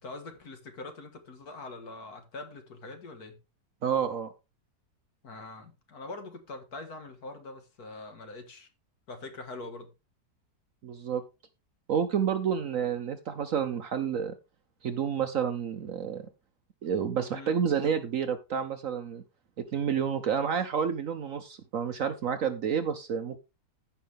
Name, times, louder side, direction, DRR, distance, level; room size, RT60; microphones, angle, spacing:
voice 1, 0.0-3.4 5.2-8.7 9.1-9.9 17.3-17.5, left 2 dB, 60° left, 2.1 m, -43 dB
voice 2, 3.8-4.3 10.8-11.2 11.9-14.3 14.8-16.3 16.8-19.2 19.6-23.4, right 7 dB, 60° right, 1.0 m, -29 dB
15.0 x 5.4 x 3.5 m
omnidirectional pair, 1.9 m